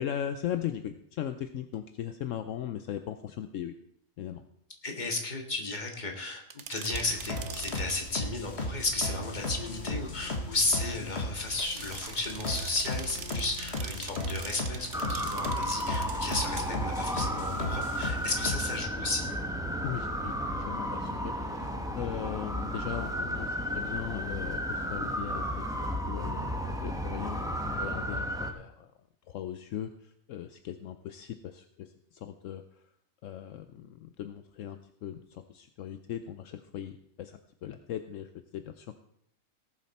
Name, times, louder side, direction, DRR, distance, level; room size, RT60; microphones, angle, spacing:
voice 1, 0.0-3.7 4.2-4.4 19.8-25.6 26.0-26.6 26.8-28.9 29.3-32.6 33.2-39.0, left 10 dB, 75° left, 9 dB, 1.0 m, -38 dB
voice 2, 4.8-6.4 6.7-19.3, left 2 dB, 35° left, 2 dB, 1.8 m, -33 dB
sound 1, 6.5-8.0 11.4-16.6, right 8 dB, 65° right, 1.1 m, -44 dB
sound 2, 6.9-18.8, left 1 dB, 55° left, 1.8 m, -36 dB
sound 3, 14.9-28.5, equal, 5° right, 1.0 m, -33 dB
18.0 x 7.4 x 4.2 m, 0.71 s
omnidirectional pair, 1.4 m